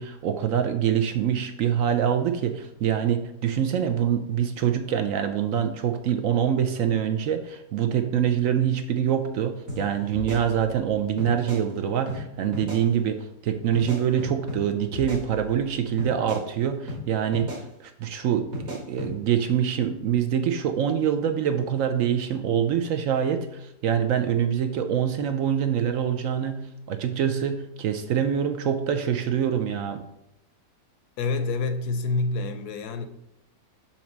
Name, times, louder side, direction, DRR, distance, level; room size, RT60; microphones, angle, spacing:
voice 1, 0.0-17.5 17.8-26.6 26.9-30.0, right 9 dB, 70° right, 0.8 m, -25 dB
sound 1, 9.7-9.8 10.1-10.9 11.2-11.6 12.1-12.2 12.5-12.8 13.7-14.6 14.9-15.7 16.0-16.4 16.9-17.0 17.3-17.6 18.5-19.1, left 1 dB, 55° right, 2.4 m, -35 dB
voice 2, 31.2-33.1, left 3 dB, 75° left, 1.0 m, -27 dB
7.1 x 3.0 x 6.0 m
omnidirectional pair, 1.8 m